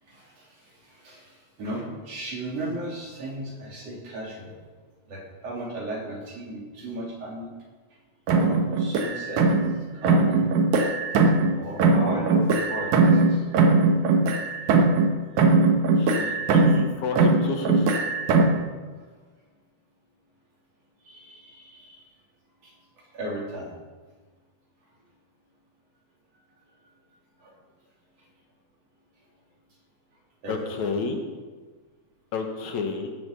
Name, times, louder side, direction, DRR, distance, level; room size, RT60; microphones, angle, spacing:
voice 1, 0.1-0.5 0.9-1.3 1.6-4.5 5.1-7.5 8.3-9.4 10.0-10.5 11.6-13.4 21.1-22.0 22.6-22.7 23.1-23.7 27.4-27.5 30.4-30.9, right 1 dB, 55° right, -3 dB, 4.3 m, -35 dB
sound 1, 8.3-9.8 10.0-11.5 11.8-15.1 15.4-16.9 17.2-18.6, right 3 dB, 75° right, 2.5 m, -20 dB
voice 2, 16.0-17.9 30.5-31.2 32.3-33.1, left 4 dB, 70° left, 4 dB, 2.6 m, -30 dB
17.5 x 8.0 x 6.9 m, 1.4 s
omnidirectional pair, 3.5 m